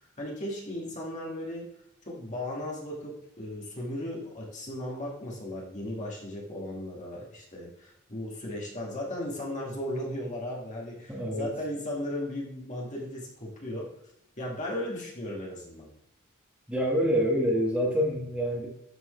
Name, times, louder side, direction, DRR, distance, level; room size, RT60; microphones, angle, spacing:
voice 1, 0.0-1.7 2.1-13.9 14.4-15.9, left 1 dB, 35° left, -3 dB, 2.1 m, -36 dB
voice 2, 11.1-11.5 16.7-18.7, equal, 5° right, -4 dB, 1.6 m, -26 dB
12.0 x 4.7 x 3.3 m, 0.79 s
head